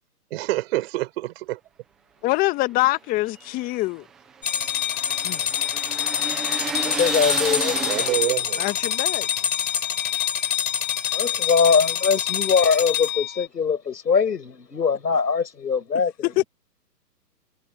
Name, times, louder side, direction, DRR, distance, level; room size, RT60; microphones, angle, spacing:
voice 1, 0.3-1.6 7.6-8.6, right 17 dB, 35° right, 4.7 m, -27 dB
voice 2, 2.2-4.1 5.2-5.5 8.6-9.3 16.2-16.4, left 19 dB, 15° left, 1.5 m, -24 dB
sound 1, 3.1-8.6, right 6 dB, ahead, 0.5 m, -32 dB
sound 2, 4.4-13.5, left 10 dB, 55° left, 5.0 m, -26 dB
voice 3, 6.8-8.1 11.1-16.1, left 5 dB, 80° left, 5.8 m, -22 dB
hypercardioid pair, 140°, 49 cm